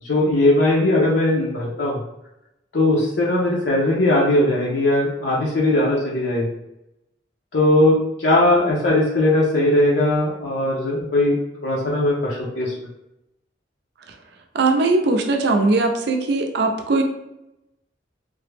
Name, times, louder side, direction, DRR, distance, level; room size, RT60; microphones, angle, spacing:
voice 1, 0.0-2.0 2.7-6.5 7.5-11.4 11.6-12.7, left 1 dB, 70° left, -4 dB, 0.6 m, -19 dB
voice 2, 14.5-17.0, right 3 dB, 65° right, 3 dB, 0.5 m, -19 dB
3.3 x 2.0 x 3.2 m, 0.89 s
head